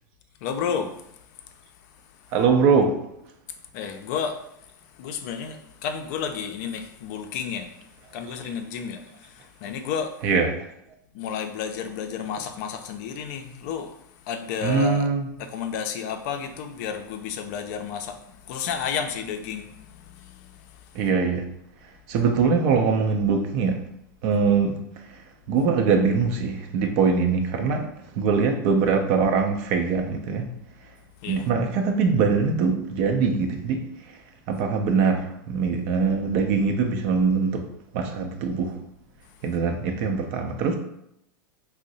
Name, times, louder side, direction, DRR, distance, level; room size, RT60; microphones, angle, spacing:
voice 1, 0.4-1.1 3.7-4.4 4.9-7.7 8.1-10.2 11.1-14.0 14.2-15.0 15.4-21.0 31.2-31.5, left 7 dB, 60° left, 6 dB, 0.4 m, -32 dB
voice 2, 2.3-3.0 8.1-8.2 10.2-10.6 14.6-15.3 20.9-21.5 21.8-23.8 24.2-30.5 30.8-30.9 31.3-37.7 37.9-38.8 39.4-40.8, right 5 dB, 50° right, 4 dB, 0.6 m, -23 dB
2.6 x 2.1 x 3.9 m, 0.77 s
hypercardioid pair, 100°, 11 cm